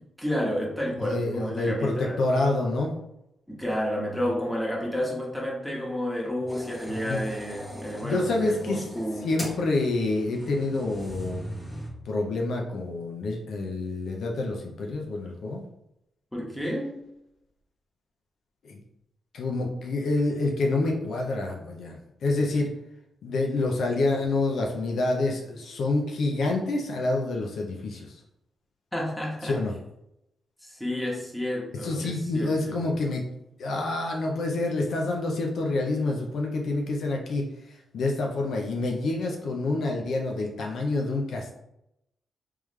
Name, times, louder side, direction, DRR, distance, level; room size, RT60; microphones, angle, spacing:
voice 1, 0.2-2.3 3.5-9.3 16.3-16.9 28.9-29.6 30.6-32.8, equal, 5° left, -3 dB, 1.4 m, -31 dB
voice 2, 1.0-2.9 6.9-7.2 8.0-8.8 9.2-11.4 12.0-15.6 18.6-18.8 19.3-22.7 23.2-28.2 29.4-29.7 31.8-33.2 33.6-41.5, left 2 dB, 75° left, 1 dB, 0.7 m, -27 dB
sound 1, 6.5-11.9, equal, 25° left, 1.4 m, -40 dB
3.5 x 3.3 x 3.2 m, 0.83 s
cardioid pair, 75°, 0 cm